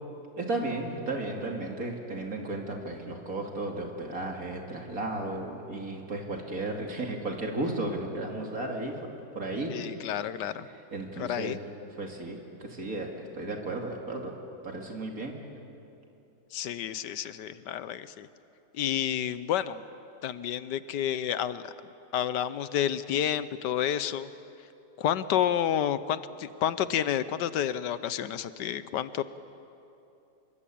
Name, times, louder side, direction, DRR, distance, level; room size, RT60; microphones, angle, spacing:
voice 1, 0.4-10.1 10.7-11.6 12.0-14.3 14.6-15.4, right 2 dB, 55° right, 1 dB, 3.0 m, -34 dB
voice 2, 9.7-10.7 11.2-11.6 16.5-18.3 18.7-19.8 20.2-21.7 22.1-24.3 25.0-29.2, left 10 dB, 80° left, 14 dB, 1.4 m, -30 dB
25.5 x 22.5 x 8.6 m, 2.8 s
omnidirectional pair, 1.8 m